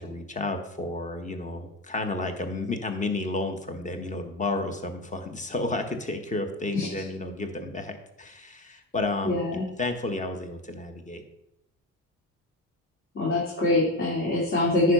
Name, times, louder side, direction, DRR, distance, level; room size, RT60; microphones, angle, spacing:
voice 1, 0.0-11.2, left 2 dB, 25° left, 6 dB, 1.4 m, -32 dB
voice 2, 9.2-9.7 13.1-14.9, left 2 dB, 45° left, -6 dB, 2.6 m, -24 dB
9.8 x 4.8 x 5.5 m, 0.85 s
cardioid pair, 90°, 30 cm